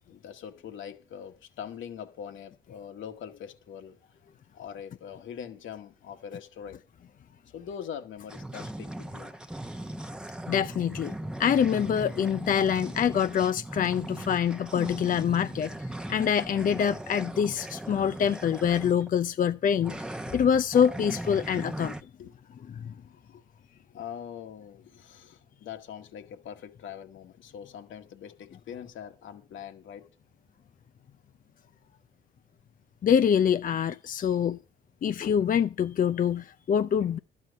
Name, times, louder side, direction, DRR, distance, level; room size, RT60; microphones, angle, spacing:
voice 1, 0.1-4.0 4.5-6.8 7.5-9.7 22.2-22.3 23.1-23.4 23.8-30.1, left 8 dB, 75° left, 1.8 m, -43 dB
sound 1, 8.3-19.1 19.8-22.0, right 1 dB, 5° right, 1.0 m, -39 dB
voice 2, 10.5-21.9 22.8-22.9 33.0-34.6 35.0-37.2, left 8 dB, 45° left, 0.5 m, -25 dB
12.0 x 9.4 x 5.4 m
cardioid pair, 90°, 20 cm